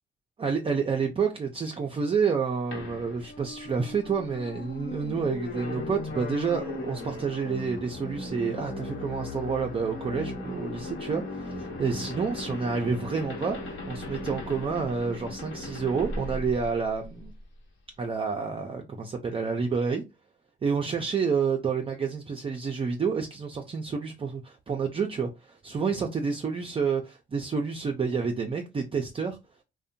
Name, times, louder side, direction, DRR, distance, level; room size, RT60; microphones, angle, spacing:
voice 1, 0.4-17.3 18.0-20.0 20.6-29.4, right 5 dB, 30° right, 0.4 m, -29 dB
sound 1, 2.7-17.4, left 2 dB, 70° left, 1.0 m, -37 dB
2.6 x 2.1 x 2.5 m
cardioid pair, 90°, 20 cm